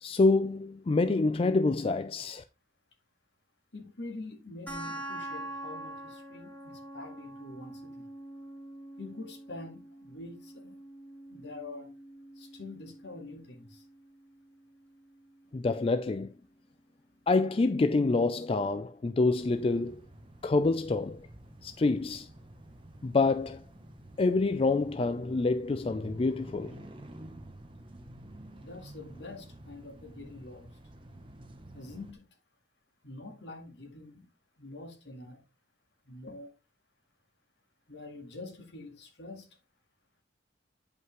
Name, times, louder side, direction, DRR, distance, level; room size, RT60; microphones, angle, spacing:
voice 1, 0.0-2.4 15.5-16.3 17.3-20.0 20.4-21.2 21.6-22.3 23.0-23.6 24.2-26.7, left 3 dB, 30° left, 0.3 m, -27 dB
voice 2, 3.7-8.1 9.0-10.8 11.3-11.9 12.4-13.8 28.6-30.7 31.7-32.3 33.0-34.3 34.6-35.4 36.1-36.5 37.9-39.5, left 2 dB, 70° left, 2.0 m, -45 dB
sound 1, 4.7-15.6, right 1 dB, 10° left, 2.2 m, -45 dB
sound 2, 19.3-32.1, right 1 dB, 30° right, 1.0 m, -50 dB
9.4 x 5.5 x 3.3 m
head